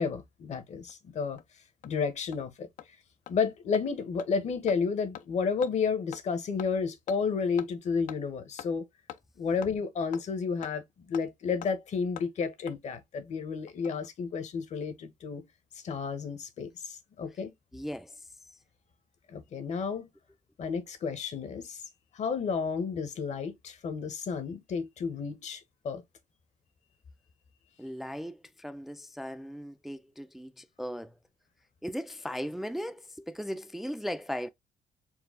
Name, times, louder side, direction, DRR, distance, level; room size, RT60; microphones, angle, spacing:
voice 1, 0.0-1.4 1.8-2.7 3.3-8.9 9.4-10.8 11.1-15.4 15.8-17.5 19.3-20.1 20.6-21.8 22.1-26.0, left 5 dB, 60° left, 1.1 m, -31 dB
Hammer, 0.9-1.0 1.4-1.5 1.8-1.9 2.3-2.4 2.8-2.9 3.3-3.4 3.7-3.8 4.2-4.3 4.7-4.8 5.1-5.3 5.6-5.7 6.1-6.3 6.6-6.7 7.1-7.2 7.6-7.7 8.1-8.2 8.6-8.7 9.1-9.2 9.6-9.7 10.1-10.2 10.6-10.7 11.1-11.3 11.6-11.7 12.2-12.3 12.7-12.8 13.7-14.1 14.3-14.4, left 11 dB, 80° left, 0.5 m, -43 dB
voice 2, 17.7-18.3 27.8-31.2 31.8-34.5, equal, ahead, 0.3 m, -38 dB
4.6 x 2.3 x 3.6 m
cardioid pair, 110°, 13 cm